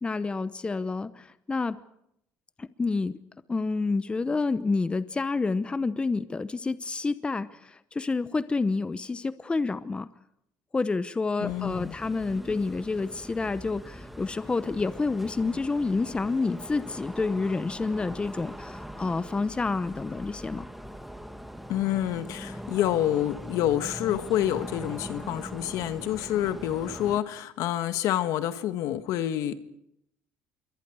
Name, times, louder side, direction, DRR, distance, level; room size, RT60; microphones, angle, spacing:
voice 1, 0.0-1.8 2.6-3.2 3.5-10.1 10.7-20.7, left 3 dB, 20° left, 14 dB, 0.8 m, -29 dB
voice 2, 11.4-12.0 21.7-29.5, left 12 dB, 75° left, 10 dB, 1.5 m, -28 dB
sound 1, 11.5-27.2, equal, ahead, 1.4 m, -41 dB
27.0 x 23.0 x 4.8 m, 0.77 s
cardioid pair, 115°, 6 cm